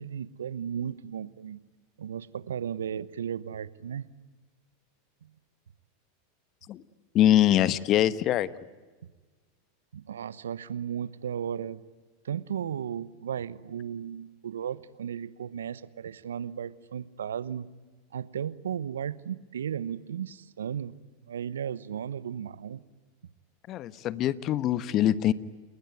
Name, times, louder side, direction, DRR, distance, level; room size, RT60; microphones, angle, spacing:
voice 1, 0.0-1.6 2.0-4.1 5.2-5.3 9.9-11.8 12.2-17.7 18.1-21.0 21.3-22.8, right 8 dB, 80° right, 0.9 m, -35 dB
voice 2, 7.1-8.5 23.7-25.3, left 12 dB, 40° left, 1.2 m, -23 dB
29.5 x 21.0 x 9.5 m
hypercardioid pair, 95°, 0 cm